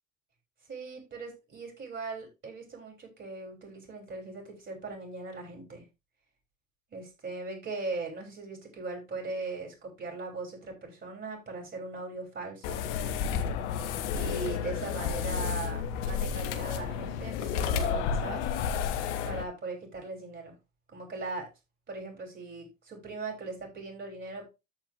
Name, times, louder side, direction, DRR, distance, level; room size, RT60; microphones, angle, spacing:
voice 1, 0.7-5.8 6.9-12.8 14.1-18.4 19.2-20.6 20.9-21.5 21.9-24.5, right 3 dB, 30° right, 1 dB, 6.8 m, -39 dB
sound 1, 12.6-19.4, left 7 dB, 65° left, 1.4 m, -31 dB
14.0 x 4.8 x 3.7 m, 0.26 s
hypercardioid pair, 70°, 37 cm